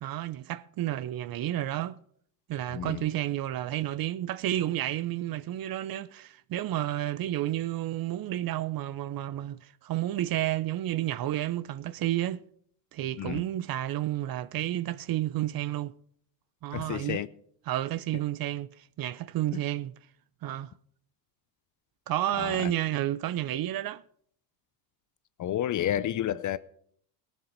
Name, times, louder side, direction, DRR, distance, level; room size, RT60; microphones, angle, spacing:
voice 1, 0.0-2.0 2.5-12.4 12.9-15.9 16.6-17.2 17.7-19.9 20.4-20.7 22.1-24.0, right 13 dB, 45° right, 0.6 m, -31 dB
voice 2, 2.7-3.0 13.2-13.4 16.7-17.3 19.5-19.6 22.4-22.7 25.4-26.6, left 11 dB, 40° left, 0.6 m, -30 dB
18.0 x 7.5 x 5.3 m
supercardioid pair, 80°, 49 cm